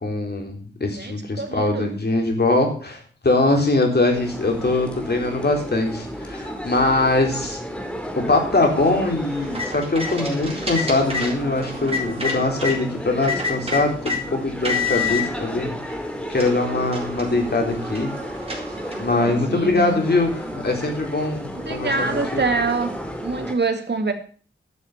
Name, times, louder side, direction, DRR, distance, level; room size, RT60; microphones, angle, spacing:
voice 1, 0.0-7.6 8.2-15.8 16.3-18.1 19.0-21.9 22.3-22.4, left 2 dB, 55° left, 2 dB, 4.0 m, -22 dB
voice 2, 0.9-1.9 14.9-15.2 19.0-20.0 21.6-22.9 23.2-24.1, right 3 dB, 60° right, 6 dB, 2.2 m, -26 dB
sound 1, 4.1-23.5, equal, 5° left, 2.7 m, -33 dB
sound 2, 9.3-12.8 13.2-14.2 14.6-15.2 15.9-16.0 16.3-19.1, left 4 dB, 30° right, 4.1 m, -28 dB
11.5 x 7.1 x 7.2 m, 0.41 s
wide cardioid pair, 70°, 20 cm